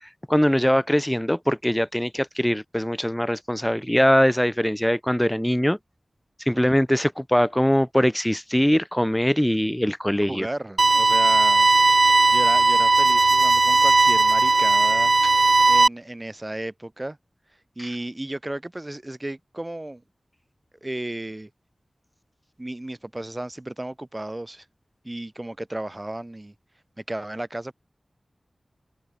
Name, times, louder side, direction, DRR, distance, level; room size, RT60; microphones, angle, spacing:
voice 1, 0.3-5.8 6.5-10.5, equal, 5° left, 0.5 m, -22 dB
voice 2, 10.2-11.7 12.3-15.1 15.7-17.2 17.8-20.0 20.8-21.5 22.6-24.6 25.0-26.5 27.0-27.7, right 1 dB, 25° right, 3.1 m, -34 dB
sound 1, 10.8-15.9, right 3 dB, 55° right, 0.6 m, -17 dB
wide cardioid pair, 80°, 0 cm